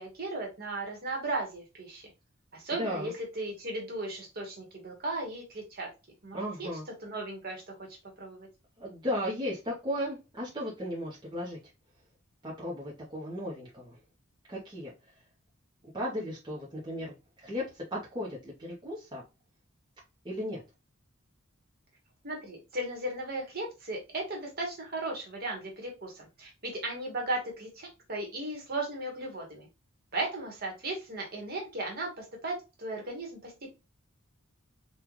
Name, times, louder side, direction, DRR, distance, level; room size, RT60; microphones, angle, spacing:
voice 1, 0.0-2.1 2.5-5.9 6.2-6.7 7.0-7.8 8.2-8.5 22.2-29.7 30.1-33.7, right 2 dB, 45° right, 1 dB, 1.2 m, -36 dB
voice 2, 2.8-3.1 6.3-6.9 8.8-11.6 12.4-14.0 14.5-14.9 15.8-19.2 20.2-20.6, equal, 20° right, -5 dB, 0.8 m, -35 dB
3.7 x 2.4 x 3.0 m, 0.27 s
head